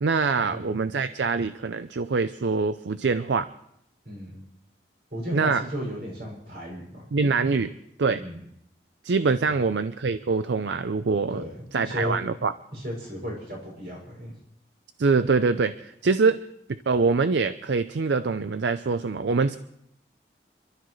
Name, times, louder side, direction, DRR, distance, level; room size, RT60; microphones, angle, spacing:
voice 1, 0.0-3.5 5.3-5.6 7.1-7.7 8.0-8.2 9.0-11.4 11.7-12.5 15.0-16.4 16.7-19.6, right 4 dB, 80° right, 12 dB, 0.5 m, -24 dB
voice 2, 4.0-4.4 5.1-7.1 7.5-7.6 8.2-8.4 9.5-9.6 11.3-12.2 12.7-14.3, equal, 60° right, -1 dB, 6.1 m, -35 dB
27.5 x 12.5 x 3.2 m, 0.76 s
head